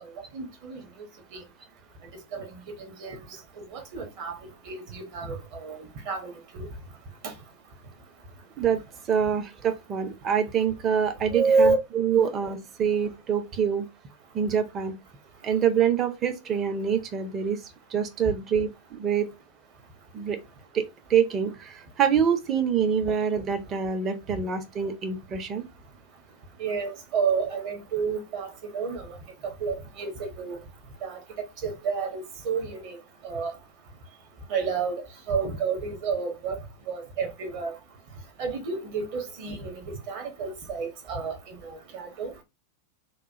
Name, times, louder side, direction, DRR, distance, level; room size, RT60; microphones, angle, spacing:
voice 1, 0.3-0.8 2.3-2.4 2.8-3.2 3.6-4.3 4.7-5.4 5.6-5.8 6.1-6.7 11.3-11.8 12.2-12.3 26.6-28.5 28.7-29.1 29.6-30.6 31.0-31.2 31.6-33.0 33.2-33.5 34.5-34.9 35.3-36.5 36.9-37.7 38.4-41.3 41.9-42.3, right 5 dB, 45° right, 1.0 m, -29 dB
voice 2, 9.1-11.7 12.0-13.8 14.3-14.9 15.4-17.6 17.9-19.3 20.1-20.4 20.7-25.6, right 7 dB, 30° right, 0.6 m, -25 dB
3.0 x 2.2 x 2.7 m
figure-of-eight pair, 90°, 0 cm